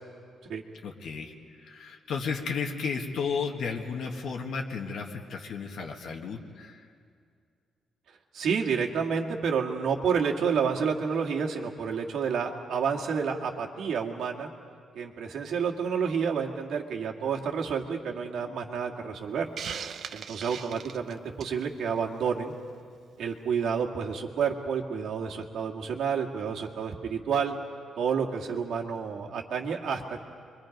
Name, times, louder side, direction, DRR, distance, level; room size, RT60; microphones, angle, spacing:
voice 1, 0.8-6.9, left 5 dB, 70° left, 2 dB, 1.7 m, -33 dB
voice 2, 8.3-14.5 15.0-19.5 20.1-22.5 23.2-27.5 28.0-30.2, right 6 dB, 75° right, 0 dB, 1.9 m, -29 dB
Hiss, 19.6-21.6, right 7 dB, 55° right, 0.7 m, -38 dB
29.5 x 23.5 x 5.3 m, 2.2 s
cardioid pair, 155°, 0 cm